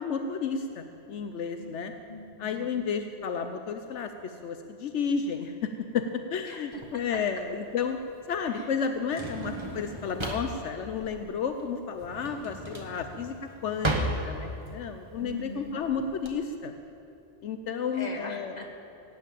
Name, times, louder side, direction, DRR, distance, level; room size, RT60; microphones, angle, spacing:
voice 1, 0.0-1.9 2.4-6.1 6.3-8.0 8.3-14.0 14.3-16.7 17.4-18.5, left 6 dB, 80° left, 7 dB, 1.0 m, -32 dB
voice 2, 2.1-2.8 6.5-7.2 8.4-8.8 15.2-15.8 17.9-18.8, left 2 dB, 35° left, 2 dB, 1.7 m, -42 dB
Drawer open or close, 6.7-16.3, right 1 dB, 25° right, 1.4 m, -35 dB
16.5 x 9.6 x 8.4 m, 2.8 s
omnidirectional pair, 1.2 m